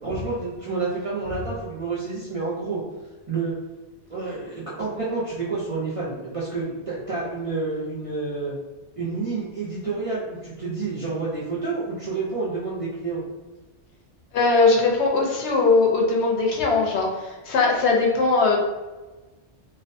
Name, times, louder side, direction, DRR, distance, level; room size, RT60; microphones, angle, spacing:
voice 1, 0.0-2.8 3.3-3.5 4.1-8.5 9.0-13.2, right 3 dB, 45° right, -7 dB, 0.5 m, -29 dB
voice 2, 14.3-18.6, left 3 dB, 75° left, -1 dB, 0.9 m, -20 dB
2.4 x 2.2 x 2.5 m, 1.2 s
omnidirectional pair, 1.1 m